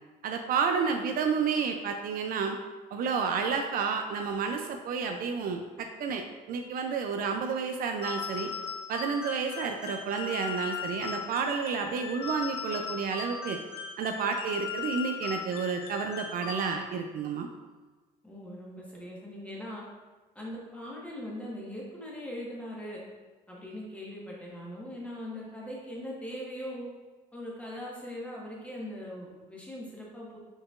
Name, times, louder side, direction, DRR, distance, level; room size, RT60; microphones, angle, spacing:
voice 1, 0.2-2.6 2.9-8.5 8.9-13.6 14.0-17.5, right 5 dB, 60° right, 5 dB, 0.4 m, -30 dB
sound 1, 8.0-17.1, left 6 dB, 65° left, 0.7 m, -38 dB
voice 2, 18.2-19.8 20.3-23.0 23.5-26.9 27.3-30.4, equal, 10° left, -4 dB, 1.3 m, -40 dB
4.7 x 4.3 x 2.4 m, 1.3 s
cardioid pair, 110°, 17 cm